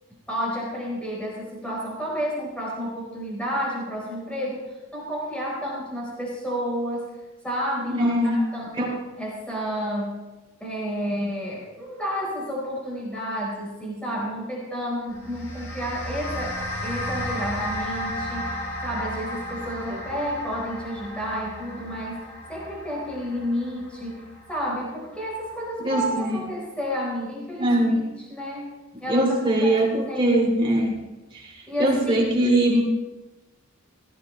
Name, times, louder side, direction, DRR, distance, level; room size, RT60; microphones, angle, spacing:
voice 1, 0.3-7.2 7.4-10.3 10.6-22.2 22.5-24.2 24.5-27.9 28.3-28.7 29.0-29.3 29.6-30.3 31.7-32.4, equal, 5° left, -5 dB, 3.9 m, -31 dB
voice 2, 7.9-8.4 8.8-8.9 19.9-20.0 25.8-26.4 27.6-28.0 29.1-31.0 31.3-31.5 31.8-32.8, right 1 dB, 25° right, -2 dB, 3.1 m, -21 dB
sound 1, 15.1-25.6, left 1 dB, 90° left, 4.3 m, -34 dB
17.5 x 14.0 x 3.1 m, 1.1 s
head